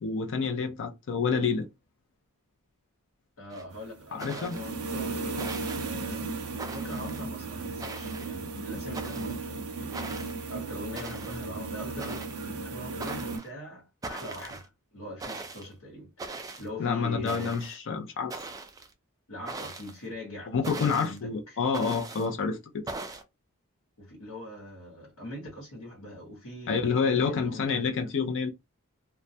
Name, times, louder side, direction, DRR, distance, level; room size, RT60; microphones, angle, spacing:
voice 1, 0.0-1.7 4.1-4.6 16.8-18.4 20.5-22.6 26.7-28.5, left 5 dB, 60° left, 0.4 m, -28 dB
voice 2, 3.4-5.5 5.8-6.4 6.7-10.1 10.4-17.6 19.3-21.6 24.0-27.8, left 1 dB, 80° left, 1.1 m, -42 dB
sound 1, 3.5-3.6 4.2-4.7 5.4-5.9 6.6-7.2 7.8-8.4 8.9-9.4 9.9-10.4 11.0-11.4 12.0-12.4 13.0-13.5 14.0-14.7 15.2-15.7 16.2-16.7 17.3-17.8 18.3-18.9 19.5-20.0 20.6-21.2 21.7-22.3 22.9-23.2, right 3 dB, 15° right, 0.3 m, -40 dB
sound 2, 3.7-13.4, right 3 dB, 75° right, 0.6 m, -35 dB
2.2 x 2.1 x 2.6 m
head